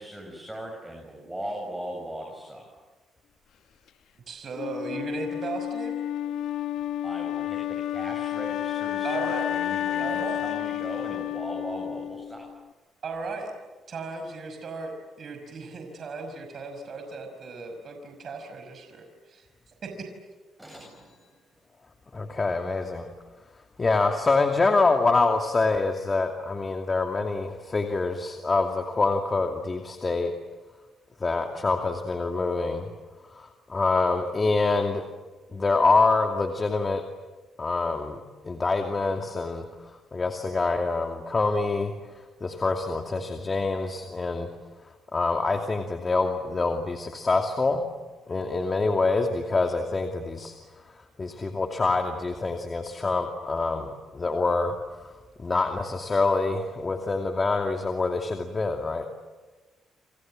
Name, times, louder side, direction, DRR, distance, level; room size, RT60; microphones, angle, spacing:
voice 1, 0.0-2.7 7.0-12.5 20.6-21.3, right 1 dB, 10° right, 0 dB, 7.5 m, -38 dB
voice 2, 4.3-6.0 9.0-9.5 10.0-10.4 13.0-13.5 13.9-20.1, right 4 dB, 50° right, 5 dB, 5.6 m, -37 dB
Wind instrument woodwind instrument, 4.6-12.6, left 11 dB, 80° left, 1.5 m, -31 dB
voice 3, 22.1-23.1 23.8-30.3 31.2-32.9 33.4-35.1 35.5-37.0 37.6-39.6 40.1-41.9 42.4-44.5 45.1-47.9 48.3-50.5 51.2-54.7 55.0-59.1, left 3 dB, 30° left, 4 dB, 2.5 m, -25 dB
28.5 x 27.0 x 7.7 m, 1.2 s
cardioid pair, 90°, 0 cm